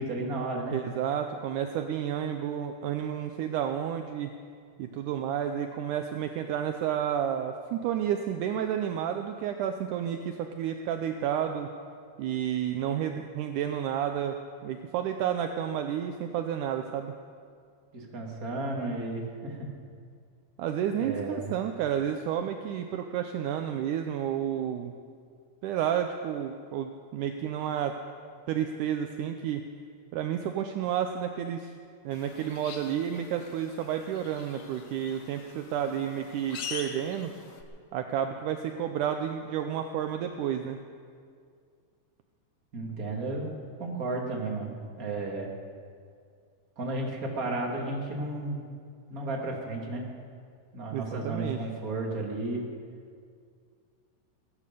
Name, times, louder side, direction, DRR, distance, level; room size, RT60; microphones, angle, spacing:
voice 1, 0.0-0.8 17.9-19.7 21.0-21.5 42.7-43.5 43.8-45.5 46.8-48.6 49.1-50.0 50.7-52.6, right 2 dB, 30° right, -1 dB, 2.4 m, -33 dB
voice 2, 0.7-4.4 4.8-11.7 12.2-14.4 14.6-17.1 20.6-24.9 25.6-28.0 28.5-29.7 30.1-31.7 32.0-37.3 37.9-40.8 50.9-51.6, right 9 dB, 75° right, 6 dB, 2.0 m, -31 dB
sound 1, 32.1-37.6, left 7 dB, 70° left, 1.2 m, -44 dB
19.0 x 10.0 x 6.9 m, 2.2 s
omnidirectional pair, 3.9 m